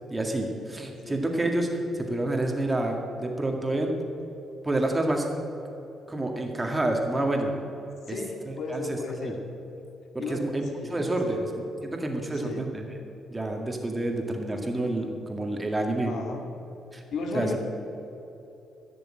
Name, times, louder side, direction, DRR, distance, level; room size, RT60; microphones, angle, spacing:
voice 1, 0.1-1.7 1.9-3.9 4.6-5.3 6.1-7.5 8.1-8.2 8.5-9.0 9.2-9.3 10.1-11.4 11.8-12.8 13.3-16.1 16.9-17.0 17.3-17.6, right 1 dB, 20° right, 2 dB, 2.1 m, -28 dB
voice 2, 1.0-1.5 8.1-9.4 10.2-11.5 12.3-12.7 16.0-16.5 17.1-17.6, left 3 dB, 70° left, 3 dB, 2.1 m, -35 dB
15.5 x 6.9 x 8.9 m, 2.9 s
cardioid pair, 90°, 0 cm